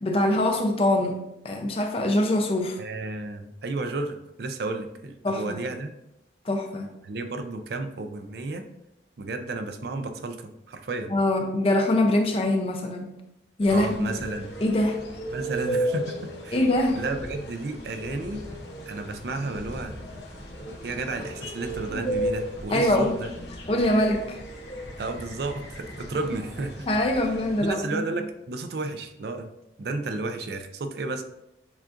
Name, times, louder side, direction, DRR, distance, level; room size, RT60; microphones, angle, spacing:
voice 1, 0.0-2.8 5.2-5.6 6.4-6.9 11.1-13.1 13.6-14.1 14.6-15.0 16.5-17.0 21.9-22.0 22.7-23.1 23.7-24.4 26.9-28.1, left 1 dB, 30° left, 3 dB, 0.5 m, -23 dB
voice 2, 2.8-5.9 7.0-8.6 9.2-11.1 13.7-14.5 15.3-16.6 16.9-18.4 18.9-19.9 20.8-23.3 25.0-26.9 27.6-29.5 29.8-31.2, right 2 dB, 60° right, 7 dB, 0.4 m, -32 dB
sound 1, 13.6-27.7, right 1 dB, 70° left, 0.7 m, -35 dB
7.1 x 2.4 x 2.4 m, 0.85 s
head